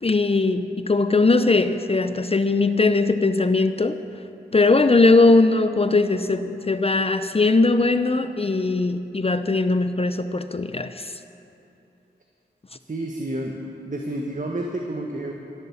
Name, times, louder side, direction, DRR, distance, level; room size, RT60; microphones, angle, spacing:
voice 1, 0.0-4.0 4.5-11.1, left 3 dB, 35° left, 10 dB, 0.6 m, -20 dB
voice 2, 12.9-15.3, right 1 dB, 45° right, 1 dB, 1.4 m, -30 dB
18.0 x 8.1 x 7.2 m, 2.9 s
cardioid pair, 45°, 18 cm